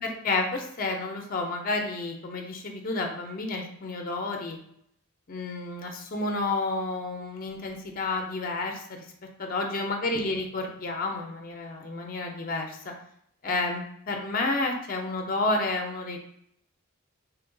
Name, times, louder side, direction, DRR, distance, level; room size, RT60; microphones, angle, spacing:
voice 1, 0.0-4.6 5.3-9.0 9.4-12.9 13.4-16.2, left 2 dB, 40° left, 3 dB, 0.5 m, -30 dB
2.8 x 2.2 x 3.7 m, 0.70 s
head